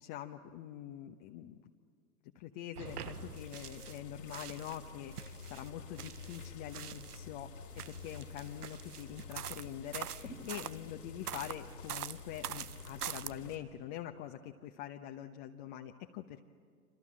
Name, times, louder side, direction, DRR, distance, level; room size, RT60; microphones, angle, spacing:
voice 1, 0.0-1.7 2.3-7.5 7.9-16.4, left 11 dB, 45° left, 4 dB, 1.1 m, -45 dB
sound 1, 2.8-13.6, left 4 dB, 85° left, 3.8 m, -49 dB
sound 2, 2.8-4.0 4.3-7.3 7.7-10.8 11.3-13.3, right 10 dB, 85° right, 0.7 m, -44 dB
28.0 x 26.5 x 7.6 m, 2.1 s
hypercardioid pair, 100°, 44 cm